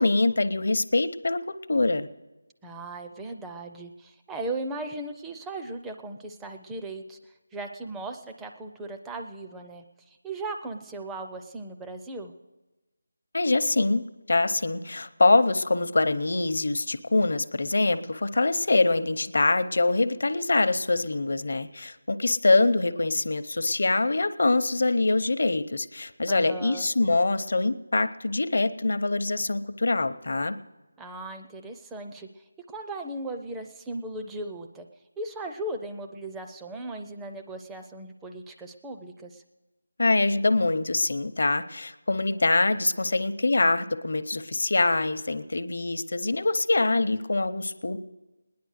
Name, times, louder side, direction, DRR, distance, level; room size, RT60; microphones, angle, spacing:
voice 1, 0.0-2.1 13.3-30.6 40.0-48.0, left 2 dB, 55° left, 11 dB, 0.7 m, -24 dB
voice 2, 2.6-7.2 7.5-9.8 10.2-12.3 26.3-26.9 31.0-32.3 32.7-34.9 35.2-39.4, right 2 dB, 5° right, 4 dB, 0.4 m, -37 dB
19.0 x 10.5 x 6.4 m, 1.1 s
figure-of-eight pair, 180°, 0 cm